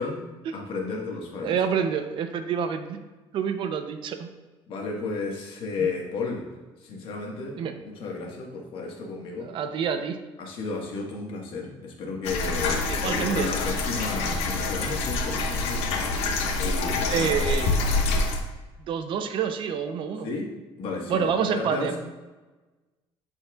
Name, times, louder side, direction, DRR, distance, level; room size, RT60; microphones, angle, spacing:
voice 1, 0.0-1.6 4.7-6.5 6.8-7.6 7.8-9.5 10.4-16.0 16.6-17.4 20.2-20.5 20.8-22.0, left 4 dB, 55° left, 0 dB, 1.5 m, -33 dB
voice 2, 1.4-3.0 3.3-4.3 5.8-5.9 7.5-7.7 9.4-10.2 12.9-13.5 17.1-17.7 18.9-20.3 21.1-22.0, right 7 dB, 50° right, 8 dB, 0.6 m, -27 dB
sound 1, 12.2-18.4, left 3 dB, 80° left, 1.0 m, -26 dB
11.5 x 4.4 x 2.4 m, 1.2 s
cardioid pair, 155°, 11 cm